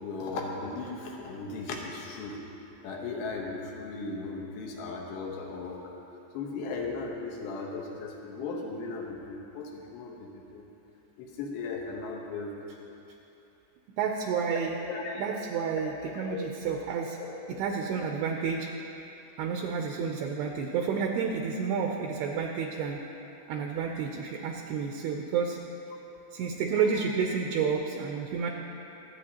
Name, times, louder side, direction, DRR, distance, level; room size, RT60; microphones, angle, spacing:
voice 1, 0.0-2.4 2.8-6.0 6.3-10.6 11.2-12.7 14.9-15.3 16.1-16.4, left 3 dB, 80° left, -1 dB, 3.2 m, -37 dB
voice 2, 14.0-14.8 15.2-17.2 17.6-18.7 19.4-23.0 23.5-25.6 26.3-28.5, right 6 dB, 80° right, 2 dB, 2.4 m, -30 dB
25.0 x 8.4 x 2.9 m, 2.9 s
omnidirectional pair, 5.1 m